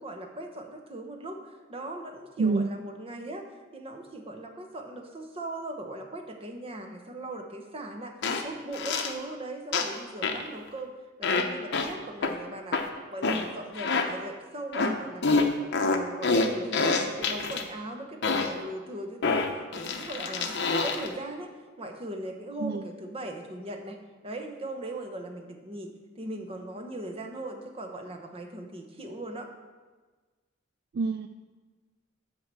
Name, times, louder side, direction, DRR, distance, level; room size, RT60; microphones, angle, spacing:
voice 1, 0.0-3.5 3.7-10.9 11.2-12.8 13.1-15.5 15.8-21.5 21.8-24.0 24.2-29.5, right 1 dB, 30° right, 3 dB, 1.0 m, -39 dB
sound 1, 8.2-8.4 8.7-9.1 9.7-10.0 10.2-10.5 11.2-11.4 11.7-11.9 12.2-12.3 12.7-12.9 13.2-13.4 13.7-14.1 14.7-14.9 15.2-17.6 18.2-18.5 19.2-21.1, left 4 dB, 60° left, 0.8 m, -26 dB
voice 2, 31.0-31.3, right 4 dB, 50° right, 9 dB, 0.3 m, -26 dB
9.4 x 4.6 x 6.8 m, 1.3 s
head